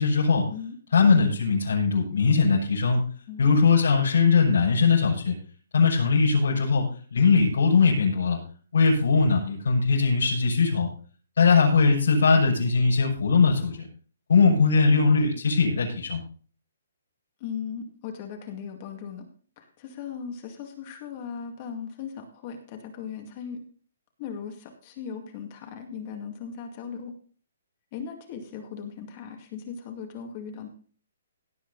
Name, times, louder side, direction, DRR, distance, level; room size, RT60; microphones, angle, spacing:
voice 1, 0.0-0.5 0.9-3.0 3.4-5.4 5.7-8.4 8.7-10.9 11.4-13.9 14.3-16.2, left 4 dB, 75° left, -3 dB, 5.8 m, -20 dB
voice 2, 3.3-3.7 17.4-19.3 19.6-23.6 24.2-27.1 27.9-30.7, left 7 dB, 30° left, 4 dB, 2.2 m, -38 dB
16.5 x 8.5 x 4.1 m, 0.40 s
hypercardioid pair, 175°, 0 cm